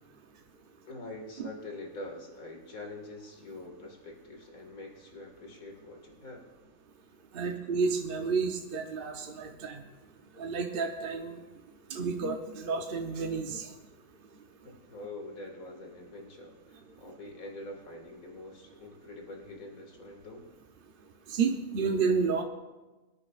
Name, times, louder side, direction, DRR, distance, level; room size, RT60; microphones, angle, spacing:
voice 1, 0.9-6.5 7.4-7.5 14.6-20.5, left 2 dB, 75° left, 1 dB, 2.4 m, -45 dB
voice 2, 7.3-9.8 10.4-11.4 11.9-13.7 21.3-22.4, right 5 dB, 45° right, 3 dB, 0.8 m, -30 dB
24.5 x 9.5 x 2.4 m, 1.1 s
omnidirectional pair, 1.5 m